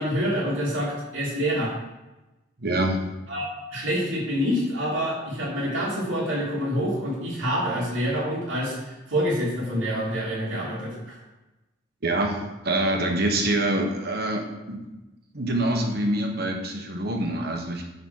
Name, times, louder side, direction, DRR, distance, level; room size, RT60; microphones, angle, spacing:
voice 1, 0.0-1.7 3.3-11.2, equal, 85° right, -8 dB, 2.8 m, -27 dB
voice 2, 2.6-3.1 12.0-12.4 12.6-14.8 15.3-17.8, right 1 dB, 50° right, 3 dB, 1.3 m, -25 dB
9.5 x 4.0 x 6.5 m, 1.0 s
head